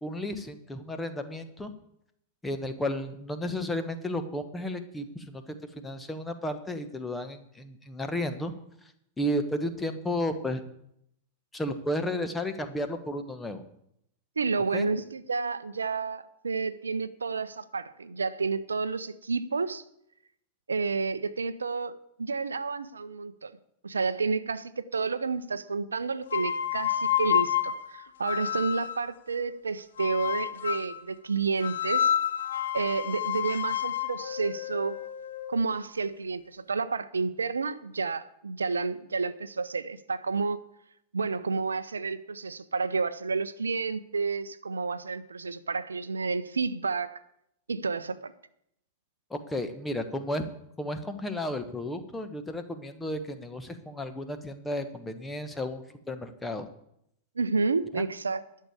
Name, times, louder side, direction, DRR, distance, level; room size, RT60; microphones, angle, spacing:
voice 1, 0.0-1.7 2.4-5.4 5.8-8.5 9.2-10.6 11.5-13.6 14.7-14.9 49.3-50.4 50.8-56.7 57.9-58.0, left 1 dB, 10° left, 8 dB, 1.3 m, -33 dB
voice 2, 14.4-19.8 20.7-23.6 23.8-32.1 32.7-35.0 35.5-40.6 41.1-47.2 47.7-48.3 57.4-58.4, right 4 dB, 75° right, 14 dB, 0.6 m, -30 dB
sound 1, 26.3-29.1 30.0-31.0 31.6-35.6, left 10 dB, 65° left, 0.8 m, -29 dB
12.0 x 6.6 x 8.6 m, 0.75 s
figure-of-eight pair, 90°, 0 cm